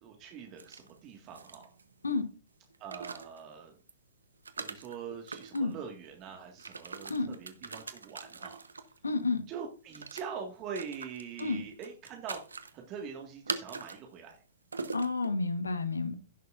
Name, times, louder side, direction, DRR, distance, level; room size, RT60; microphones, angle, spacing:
voice 1, 0.0-1.7 2.8-3.7 4.6-8.6 9.5-12.4 12.7-14.4, right 6 dB, 35° right, 1.8 m, -43 dB
sound 1, 0.6-2.1 2.7-3.4 3.9-4.0 4.4-5.7 6.4-9.0 9.9-10.2 10.7-11.4 11.8-12.7 13.5-14.0 14.3-14.4 14.7-15.3, right 4 dB, 80° right, 1.0 m, -41 dB
voice 2, 9.0-9.4 11.4-11.6 14.9-16.1, left 3 dB, 80° left, 1.3 m, -30 dB
16.5 x 6.6 x 2.5 m
figure-of-eight pair, 110°, 0 cm